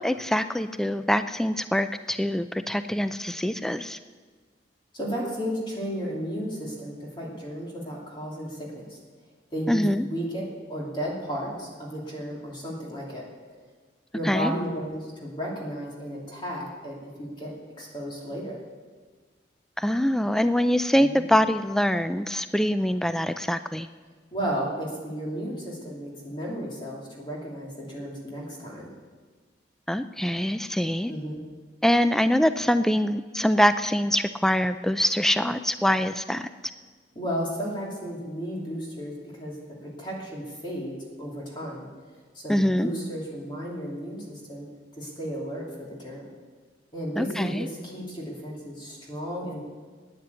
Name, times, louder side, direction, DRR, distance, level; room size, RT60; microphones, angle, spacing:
voice 1, 0.0-4.0 9.7-10.0 14.2-14.5 19.8-23.9 29.9-31.1 31.8-36.5 42.5-42.9 47.2-47.7, equal, 5° left, 11 dB, 0.3 m, -24 dB
voice 2, 4.9-9.0 9.5-10.4 10.7-13.2 14.1-18.6 21.0-21.2 24.3-28.9 31.1-31.4 37.1-41.9 42.3-44.7 45.0-46.2 46.9-49.6, equal, 25° left, -4 dB, 2.9 m, -34 dB
12.5 x 9.7 x 8.1 m, 1.4 s
head